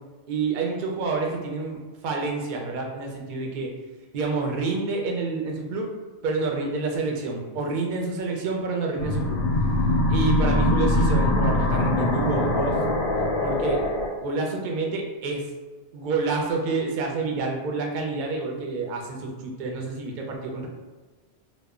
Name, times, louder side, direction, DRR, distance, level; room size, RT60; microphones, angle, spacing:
voice 1, 0.3-3.7 4.1-5.9 6.2-9.4 10.1-12.8 13.4-13.8 14.2-15.5 15.9-20.7, right 3 dB, 60° right, 1 dB, 0.5 m, -28 dB
sound 1, 9.0-14.1, left 1 dB, 60° left, 0.6 m, -22 dB
2.1 x 2.0 x 3.5 m, 1.3 s
omnidirectional pair, 1.2 m